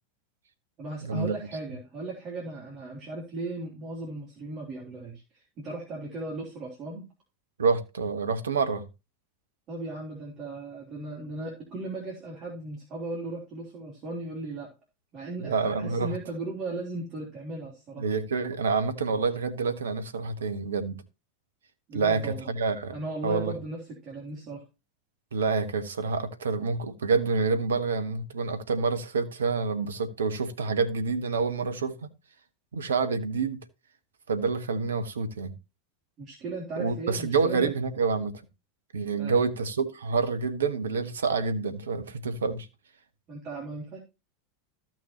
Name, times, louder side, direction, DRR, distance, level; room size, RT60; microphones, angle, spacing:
voice 1, 0.8-7.1 9.7-14.7 15.1-18.1 21.9-22.5 22.9-24.6 36.2-37.7 39.2-39.3 43.3-44.0, right 2 dB, 40° right, 3.3 m, -37 dB
voice 2, 7.6-8.9 15.4-16.1 18.0-21.0 21.9-23.0 23.2-23.5 25.3-32.1 32.7-33.6 34.3-35.5 36.8-38.3 38.9-42.7, right 4 dB, 75° right, 1.1 m, -27 dB
14.5 x 6.1 x 2.9 m
figure-of-eight pair, 85°, 0 cm